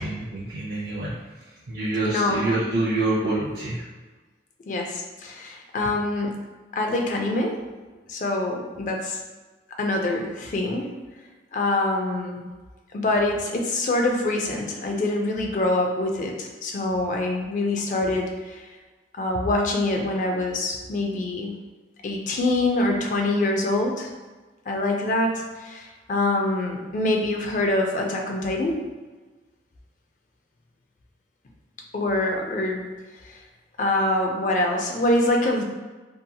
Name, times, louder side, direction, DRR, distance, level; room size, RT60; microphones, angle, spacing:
voice 1, 0.0-3.9, right 2 dB, 55° right, -6 dB, 0.4 m, -27 dB
voice 2, 2.0-2.5 4.7-6.3 6.7-7.6 8.1-9.2 9.8-10.9 11.5-12.4 12.9-18.7 19.1-21.5 22.0-24.1 24.7-28.8 31.9-32.9 33.2-33.4 33.8-35.6, left 2 dB, 45° left, 2 dB, 0.3 m, -25 dB
2.7 x 2.7 x 2.2 m, 1.3 s
head